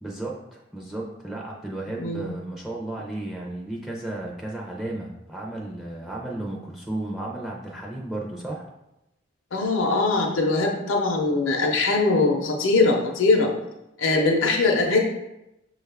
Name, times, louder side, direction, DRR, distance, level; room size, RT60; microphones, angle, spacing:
voice 1, 0.0-8.7, right 1 dB, ahead, -2 dB, 0.4 m, -34 dB
voice 2, 2.0-2.3 9.5-13.5 14.0-15.0, left 3 dB, 75° left, 1 dB, 0.6 m, -21 dB
6.4 x 2.3 x 3.3 m, 0.90 s
head